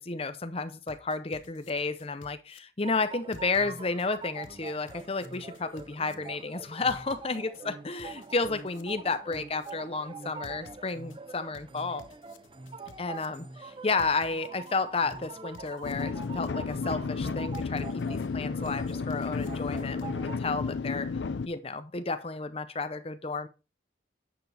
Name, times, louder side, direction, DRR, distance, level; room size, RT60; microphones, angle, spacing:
voice 1, 0.0-12.1 13.0-21.1 21.5-23.5, left 3 dB, 30° left, 0.7 m, -32 dB
sound 1, 0.9-2.6 3.3-4.1 4.4-6.1 6.9-7.6 8.0-9.7 10.4-11.2 11.5-13.3 14.0-14.7 15.1-16.8 17.5-18.3 18.7-20.1, left 3 dB, 85° left, 0.9 m, -52 dB
sound 2, 2.8-20.4, right 4 dB, 25° right, 0.5 m, -45 dB
sound 3, 15.8-21.5, left 4 dB, 70° left, 0.5 m, -32 dB
10.0 x 7.1 x 3.4 m
head